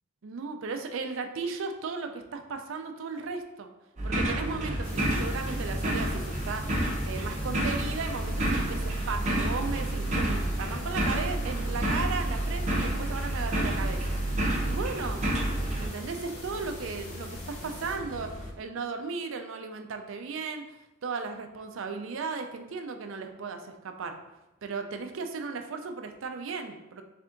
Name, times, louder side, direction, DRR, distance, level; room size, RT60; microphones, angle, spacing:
voice 1, 0.2-3.7 4.0-6.7 7.0-14.2 14.6-15.2 15.8-20.6 21.0-24.2 24.6-27.0, right 4 dB, 60° right, 5 dB, 0.4 m, -36 dB
sound 1, 4.0-15.9, right 1 dB, 35° right, 0.7 m, -29 dB
sound 2, 4.1-18.5, left 1 dB, 35° left, 0.5 m, -42 dB
sound 3, 4.8-18.0, left 2 dB, 75° left, 1.4 m, -47 dB
3.6 x 3.3 x 3.7 m, 0.99 s
head